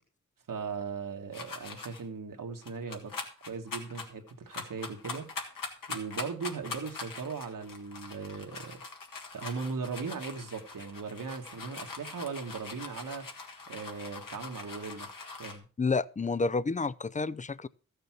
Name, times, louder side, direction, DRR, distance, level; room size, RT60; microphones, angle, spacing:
voice 1, 0.5-3.1 3.4-5.3 5.9-8.8 9.3-13.3 13.7-15.7, right 5 dB, 75° right, 1.7 m, -38 dB
sound 1, 1.3-2.0 2.6-15.6, left 4 dB, 80° left, 2.2 m, -42 dB
voice 2, 15.8-17.7, left 4 dB, 25° left, 0.5 m, -29 dB
14.0 x 6.7 x 5.9 m
wide cardioid pair, 70°, 33 cm